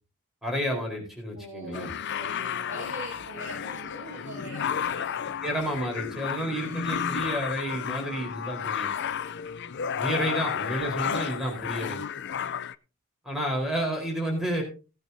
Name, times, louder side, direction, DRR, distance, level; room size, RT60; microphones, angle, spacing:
voice 1, 0.4-1.9 5.4-8.9 10.0-12.0 13.2-14.6, equal, ahead, 1 dB, 4.2 m, -30 dB
voice 2, 1.3-5.3 6.4-6.9, right 1 dB, 45° right, -5 dB, 6.3 m, -43 dB
sound 1, 1.7-12.8, left 7 dB, 55° left, 0.5 m, -32 dB
17.5 x 9.2 x 2.7 m, 0.33 s
head